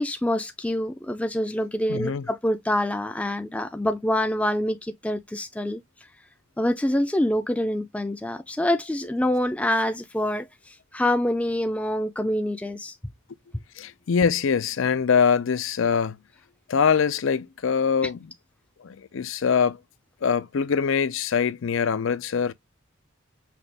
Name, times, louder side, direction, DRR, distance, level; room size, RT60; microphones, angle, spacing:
voice 1, 0.0-5.8 6.6-13.0, left 1 dB, 5° left, 0.4 m, -26 dB
voice 2, 1.9-2.3 13.8-16.2 16.7-18.3 18.8-19.8 20.2-22.5, left 6 dB, 70° left, 0.5 m, -23 dB
5.8 x 2.3 x 3.4 m
head